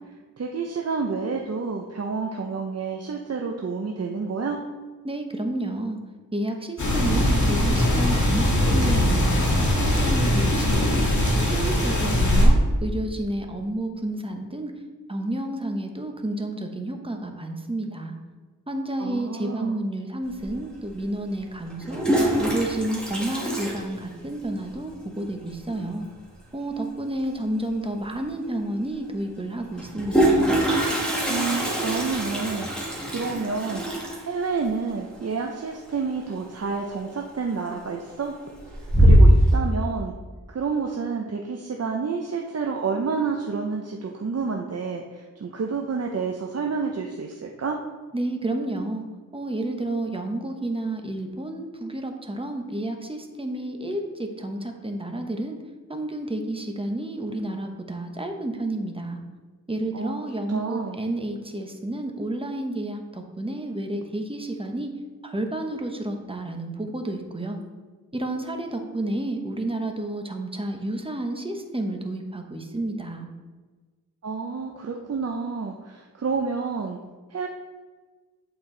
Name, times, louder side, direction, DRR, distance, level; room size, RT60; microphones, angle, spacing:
voice 1, 0.4-4.6 19.0-19.8 31.3-33.8 34.2-38.3 39.0-40.2 40.5-47.8 59.9-60.2 60.5-61.0 74.2-77.0 77.3-77.5, right 5 dB, 45° right, 1 dB, 0.6 m, -29 dB
voice 2, 5.0-6.0 6.3-11.1 11.4-14.7 15.1-18.2 18.7-22.1 22.4-26.1 26.5-30.5 48.1-49.0 49.3-55.6 55.9-59.2 59.7-64.9 65.2-67.6 68.1-73.3, right 1 dB, 15° right, 3 dB, 0.9 m, -30 dB
sound 1, 6.8-12.5, left 1 dB, 55° left, 1.7 m, -21 dB
Toilet flush, 20.4-20.5 21.7-24.5 24.8-24.9 25.2-25.3 25.5-25.9 27.6-27.7 28.1-28.2 29.7-36.4 36.7-37.2 37.6-38.1 38.5-39.5, equal, 5° left, 1.8 m, -22 dB
8.5 x 4.5 x 3.8 m, 1.4 s
wide cardioid pair, 75°, 36 cm